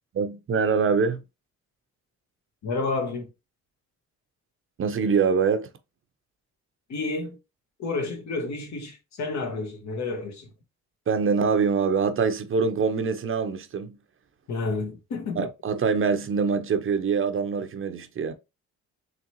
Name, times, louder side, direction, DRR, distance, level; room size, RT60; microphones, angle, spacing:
voice 1, 0.1-1.2 4.8-5.7 11.1-14.0 15.4-18.3, right 5 dB, 45° right, 0.7 m, -24 dB
voice 2, 2.6-3.3 6.9-7.4 7.8-10.5 14.5-15.5, left 3 dB, 65° left, 1.5 m, -30 dB
3.9 x 3.2 x 3.0 m
cardioid pair, 90°, 30 cm